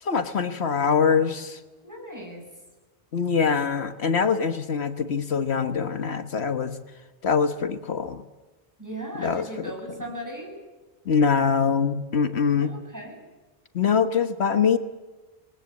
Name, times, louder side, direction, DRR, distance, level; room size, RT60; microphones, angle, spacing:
voice 1, 0.0-1.6 3.1-6.8 7.2-8.2 9.2-9.4 11.0-12.7 13.7-14.8, left 6 dB, 75° left, 9 dB, 1.5 m, -23 dB
voice 2, 1.8-2.4 8.8-10.6 12.6-13.2, right 1 dB, 15° right, 1 dB, 7.4 m, -37 dB
28.0 x 20.5 x 8.4 m, 1.2 s
omnidirectional pair, 1.1 m